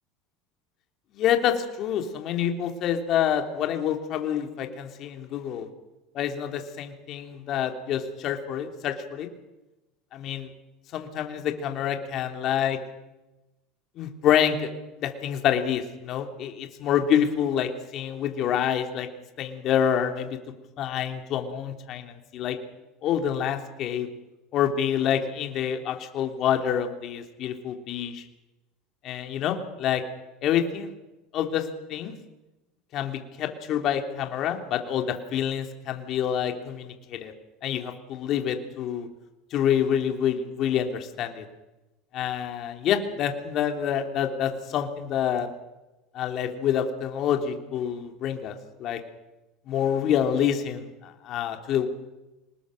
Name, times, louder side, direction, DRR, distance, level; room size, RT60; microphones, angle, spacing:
voice 1, 1.2-5.7 6.1-9.3 10.1-10.5 10.9-12.8 14.0-14.7 15.0-19.1 19.4-20.4 20.8-22.6 23.0-24.1 24.5-28.2 29.0-30.0 30.4-30.9 31.3-31.6 31.9-32.1 32.9-37.3 37.6-39.1 39.5-41.4 42.1-45.5 46.1-48.5 48.8-49.0 49.7-51.9, left 9 dB, 50° left, 5 dB, 3.0 m, -27 dB
25.5 x 20.0 x 6.4 m, 1.0 s
supercardioid pair, 120°, 0 cm